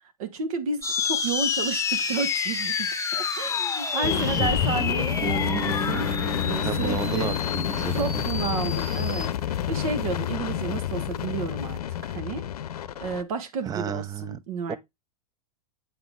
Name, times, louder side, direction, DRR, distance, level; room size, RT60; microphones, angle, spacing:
voice 1, 0.2-6.1 6.4-7.4 7.9-12.5 13.0-14.8, right 5 dB, 65° right, 1.3 m, -32 dB
sound 1, 0.8-9.3, left 6 dB, 15° left, 1.0 m, -29 dB
sound 2, 4.0-13.2, left 10 dB, 80° left, 0.6 m, -29 dB
voice 2, 4.0-4.6 6.6-8.3 13.7-14.4 14.7-14.8, right 8 dB, 20° right, 0.5 m, -32 dB
Bass guitar, 5.2-9.3, right 3 dB, 45° right, 2.2 m, -36 dB
7.9 x 3.8 x 3.7 m
hypercardioid pair, 100°, 19 cm